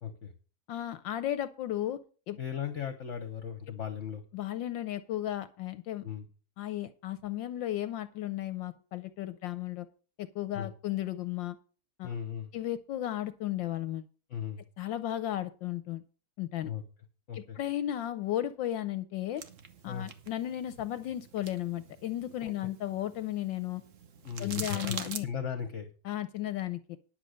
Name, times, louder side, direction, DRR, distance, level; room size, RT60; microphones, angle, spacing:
voice 1, 0.0-0.3 2.4-4.2 6.0-6.2 10.5-10.7 12.0-12.5 14.3-14.6 16.6-16.8 17.3-17.6 19.9-20.1 22.4-22.5 24.2-25.9, left 8 dB, 45° left, 9 dB, 1.1 m, -37 dB
voice 2, 0.7-2.0 2.3-2.4 4.3-6.0 6.6-9.9 10.2-11.6 12.0-12.2 12.5-14.1 14.8-16.0 16.4-16.7 17.3-19.4 19.8-23.8 24.4-25.3 26.0-27.0, left 13 dB, 70° left, 13 dB, 1.3 m, -34 dB
sound 1, 19.4-25.2, right 6 dB, 45° right, 1.1 m, -45 dB
10.5 x 6.5 x 6.4 m, 0.37 s
omnidirectional pair, 2.3 m